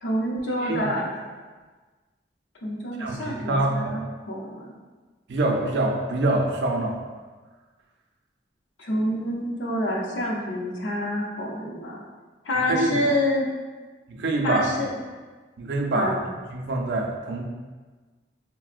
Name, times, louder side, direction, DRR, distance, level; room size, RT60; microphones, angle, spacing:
voice 1, 0.0-1.2 2.6-4.7 8.8-12.0 12.4-13.5 14.4-15.0 15.9-16.2, left 1 dB, 85° left, -3 dB, 0.6 m, -27 dB
voice 2, 3.0-4.0 5.3-7.0 12.7-13.0 14.1-14.7 15.6-16.2 16.5-17.4, right 2 dB, 70° right, 1 dB, 0.4 m, -25 dB
4.0 x 2.0 x 2.4 m, 1.4 s
head